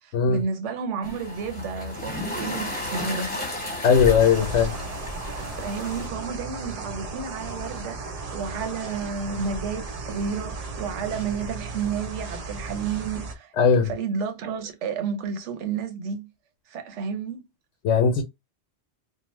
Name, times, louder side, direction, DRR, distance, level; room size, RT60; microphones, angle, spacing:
voice 1, 0.0-3.3 5.3-13.5 13.8-16.3 16.7-17.4, right 6 dB, 85° right, 1.0 m, -31 dB
sound 1, 1.0-6.1, left 1 dB, 10° left, 1.0 m, -32 dB
voice 2, 3.8-4.7 13.6-13.9 17.8-18.2, left 6 dB, 85° left, 1.0 m, -18 dB
sound 2, 4.2-13.4, right 3 dB, 45° right, 0.5 m, -35 dB
2.8 x 2.0 x 3.0 m
omnidirectional pair, 1.2 m